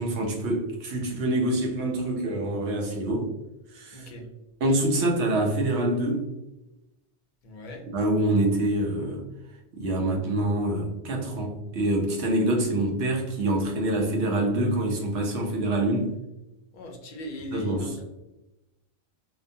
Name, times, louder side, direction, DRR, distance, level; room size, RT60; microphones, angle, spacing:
voice 1, 0.0-3.3 3.7-4.1 4.6-6.3 7.9-9.3 9.7-16.1 17.5-17.9, right 1 dB, 75° right, 1 dB, 0.9 m, -26 dB
voice 2, 3.9-4.3 7.4-7.8 16.7-18.0, left 1 dB, 55° left, 1 dB, 0.7 m, -39 dB
2.8 x 2.1 x 2.6 m, 0.96 s
omnidirectional pair, 1.2 m